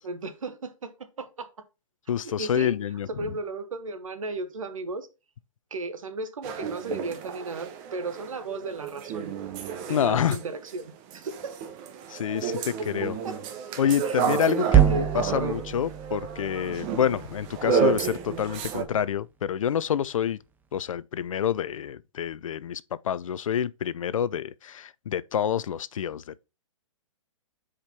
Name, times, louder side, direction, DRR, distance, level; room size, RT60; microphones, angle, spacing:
voice 1, 0.0-1.5 2.2-2.8 3.1-5.1 5.7-9.3 9.9-11.6 12.5-12.7 13.0-13.4 14.0-14.2 14.9-15.6, right 3 dB, 85° right, 1.2 m, -35 dB
voice 2, 2.1-3.3 9.9-10.4 12.1-13.2 13.8-20.4 20.7-26.4, left 9 dB, 80° left, 0.5 m, -27 dB
sound 1, 6.4-10.8 11.1-18.8, right 7 dB, 35° right, 1.0 m, -31 dB
sound 2, 14.7-19.0, right 10 dB, 10° right, 0.5 m, -27 dB
5.0 x 4.4 x 5.4 m
hypercardioid pair, 135°, 17 cm